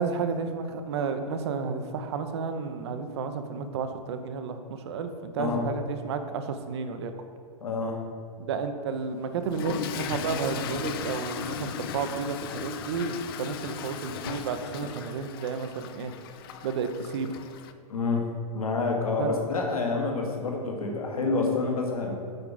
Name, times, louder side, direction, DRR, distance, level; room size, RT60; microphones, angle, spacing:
voice 1, 0.0-7.1 8.4-16.1 16.6-17.3 19.2-19.3, right 5 dB, 45° right, 8 dB, 0.6 m, -32 dB
voice 2, 7.6-8.0 17.9-18.3 18.5-22.1, left 3 dB, 65° left, 1 dB, 1.5 m, -28 dB
Toilet flush / Fill (with liquid), 9.4-17.7, left 8 dB, 35° left, 0.5 m, -37 dB
7.8 x 5.8 x 3.9 m, 2.3 s
figure-of-eight pair, 105°, 20 cm